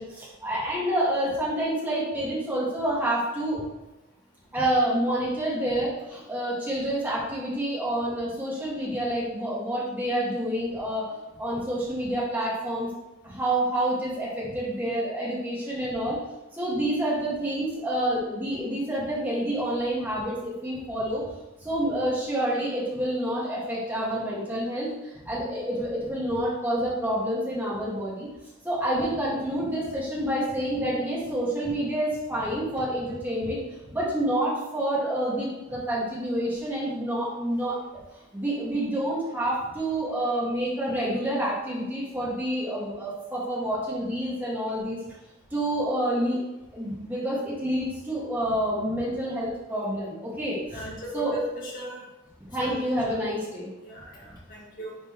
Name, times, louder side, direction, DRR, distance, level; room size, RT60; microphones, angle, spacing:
voice 1, 0.0-3.6 4.5-12.9 13.2-16.2 16.5-21.3 21.6-28.3 28.6-37.8 38.3-45.0 45.5-46.4 46.7-50.9 51.1-51.4 52.5-53.7, right 1 dB, 10° right, -7 dB, 2.0 m, -28 dB
voice 2, 50.7-52.0 52.6-52.8 53.8-55.0, left 1 dB, 40° left, -5 dB, 2.2 m, -37 dB
10.0 x 5.4 x 3.1 m, 1.0 s
head